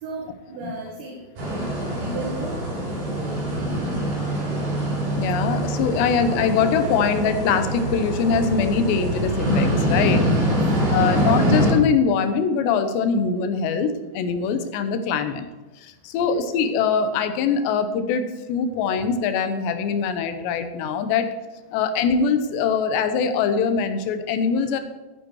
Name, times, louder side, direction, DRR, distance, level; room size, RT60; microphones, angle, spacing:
voice 1, 0.0-2.6 10.4-10.6 11.0-11.2 16.2-16.4, right 2 dB, 85° right, -2 dB, 4.0 m, -35 dB
sound 1, 1.4-11.7, right 1 dB, 55° right, 7.0 m, -24 dB
voice 2, 5.2-10.3 10.9-15.5 15.8-21.3 21.7-24.8, left 6 dB, 80° left, 8 dB, 3.2 m, -23 dB
14.0 x 9.4 x 4.7 m, 1.2 s
omnidirectional pair, 5.0 m